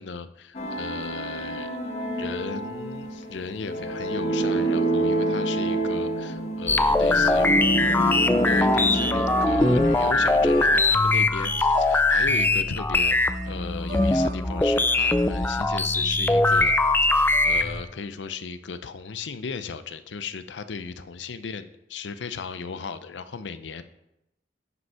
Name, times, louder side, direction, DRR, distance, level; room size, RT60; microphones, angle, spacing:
voice 1, 0.0-1.8 2.1-16.7 17.0-23.8, left 5 dB, 85° left, 12 dB, 0.6 m, -36 dB
sound 1, 0.5-10.8, right 1 dB, 40° left, 1.2 m, -27 dB
sound 2, 6.7-17.8, left 2 dB, 10° left, 0.3 m, -21 dB
sound 3, 6.8-17.9, right 1 dB, 45° right, 0.6 m, -43 dB
9.4 x 5.3 x 5.6 m, 0.89 s
head